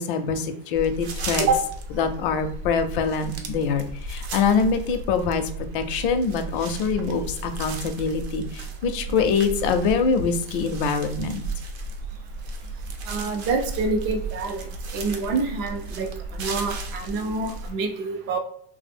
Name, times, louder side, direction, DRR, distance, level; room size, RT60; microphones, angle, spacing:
voice 1, 0.0-1.5 2.0-5.4 5.7-11.4, left 5 dB, 55° left, 8 dB, 0.5 m, -24 dB
sound 1, 0.7-17.7, right 3 dB, 75° right, 0.7 m, -34 dB
voice 2, 13.1-14.7 14.9-18.4, right 3 dB, 30° right, 5 dB, 0.4 m, -26 dB
3.1 x 2.0 x 3.4 m, 0.64 s
supercardioid pair, 145°, 32 cm